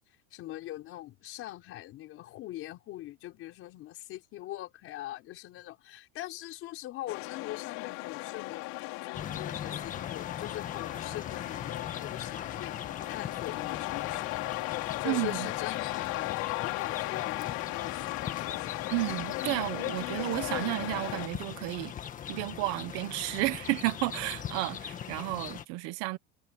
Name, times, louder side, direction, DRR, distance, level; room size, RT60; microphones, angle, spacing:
voice 1, 0.3-8.7 9.0-14.3 15.0-18.6, left 15 dB, 40° left, 5.2 m, -42 dB
sound 1, 7.1-21.3, left 23 dB, 55° left, 3.8 m, -36 dB
sound 2, 9.1-25.6, left 9 dB, 20° left, 1.7 m, -41 dB
voice 2, 15.0-15.5 18.9-21.9 22.3-26.2, right 21 dB, 50° right, 1.1 m, -32 dB
supercardioid pair, 165°, 35 cm